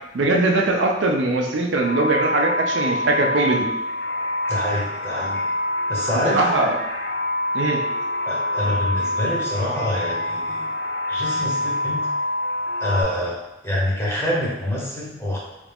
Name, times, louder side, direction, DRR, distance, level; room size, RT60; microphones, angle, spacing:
voice 1, 0.1-3.7 6.3-6.8 7.5-7.8, right 2 dB, 85° right, 1 dB, 0.5 m, -21 dB
sound 1, 1.8-13.0, left 1 dB, 80° left, 0.5 m, -26 dB
voice 2, 4.5-5.5 5.9-6.5 8.2-10.7 11.1-12.1 12.8-13.4 13.6-15.4, left 1 dB, 15° left, -6 dB, 0.9 m, -26 dB
3.3 x 2.5 x 3.4 m, 0.94 s
head